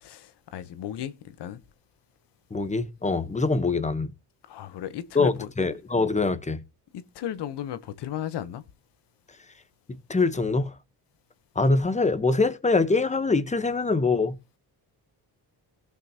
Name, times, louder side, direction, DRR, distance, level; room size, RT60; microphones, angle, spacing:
voice 1, 0.0-1.6 4.5-5.5 6.9-8.6, left 10 dB, 75° left, 1.1 m, -35 dB
voice 2, 2.5-4.1 5.1-6.6 10.1-10.7 11.5-14.3, left 3 dB, 15° left, 1.1 m, -24 dB
17.5 x 5.9 x 2.9 m
cardioid pair, 90°, 41 cm